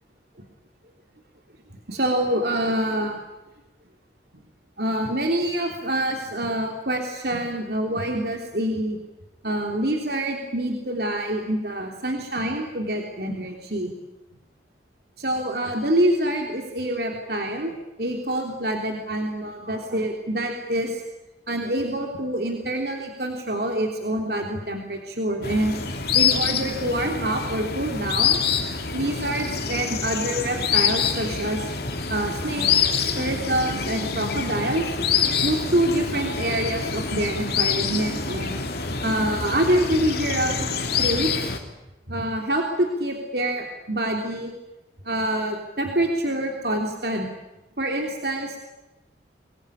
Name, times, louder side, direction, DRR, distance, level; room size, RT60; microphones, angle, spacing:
voice 1, 1.9-3.2 4.8-9.0 9.4-13.9 15.2-21.0 21.5-25.7 26.1-28.4 28.9-31.6 32.1-34.8 35.4-38.6 39.0-40.7 41.0-41.3 42.1-44.5 45.0-47.3 47.8-48.6, right 1 dB, 60° right, 2 dB, 3.3 m, -26 dB
sound 1, 25.4-41.6, left 6 dB, 55° left, 3.3 m, -26 dB
25.5 x 21.5 x 10.0 m, 0.99 s
head